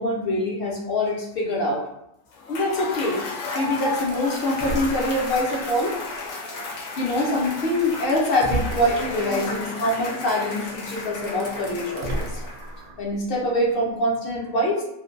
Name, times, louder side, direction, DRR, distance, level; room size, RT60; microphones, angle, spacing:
voice 1, 0.0-1.8 2.5-3.3 3.5-6.0 7.0-12.4 13.0-14.8, left 1 dB, 55° left, -3 dB, 0.7 m, -24 dB
Cheering / Applause / Crowd, 2.3-12.8, left 3 dB, 85° left, 1.0 m, -33 dB
sound 1, 4.1-5.7 6.3-6.4 7.6-7.7 8.2-9.2 10.7-10.8 11.1-13.1, right 1 dB, 75° right, 0.4 m, -32 dB
2.5 x 2.2 x 2.5 m, 0.80 s
omnidirectional pair, 1.4 m